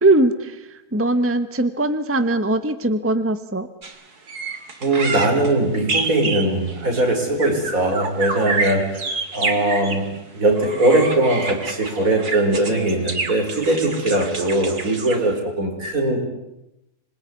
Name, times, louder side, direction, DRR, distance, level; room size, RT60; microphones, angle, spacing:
voice 1, 0.0-3.7, right 2 dB, 10° right, 11 dB, 1.1 m, -20 dB
sound 1, 3.8-3.9 4.3-10.1 10.5-15.4, right 3 dB, 90° right, 3.1 m, -28 dB
voice 2, 4.8-10.1 10.3-16.2, right 2 dB, 65° right, 3 dB, 5.6 m, -20 dB
26.5 x 21.5 x 9.7 m, 0.91 s
omnidirectional pair, 1.6 m